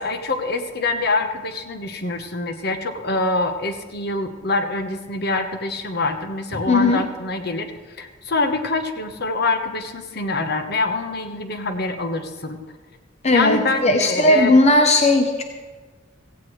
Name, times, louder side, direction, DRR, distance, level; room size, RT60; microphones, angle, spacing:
voice 1, 0.0-7.7 8.0-12.6 13.3-14.6, left 3 dB, 55° left, 7 dB, 1.1 m, -25 dB
voice 2, 6.7-7.0 13.2-15.4, left 2 dB, 35° left, 5 dB, 0.8 m, -16 dB
16.5 x 15.5 x 3.2 m, 1.4 s
head